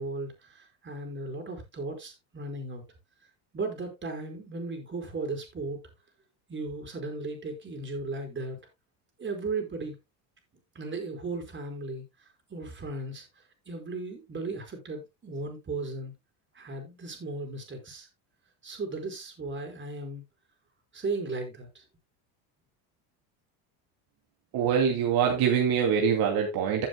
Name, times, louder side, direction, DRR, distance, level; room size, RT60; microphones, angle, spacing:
voice 1, 0.0-2.8 3.5-5.8 6.5-8.6 9.2-10.0 10.7-12.0 12.5-13.3 13.7-16.1 16.5-18.1 18.6-20.2 20.9-21.8, right 3 dB, 25° right, 4.9 m, -36 dB
voice 2, 24.5-26.9, right 7 dB, 55° right, 2.6 m, -24 dB
16.0 x 7.5 x 2.2 m
supercardioid pair, 115°, 43 cm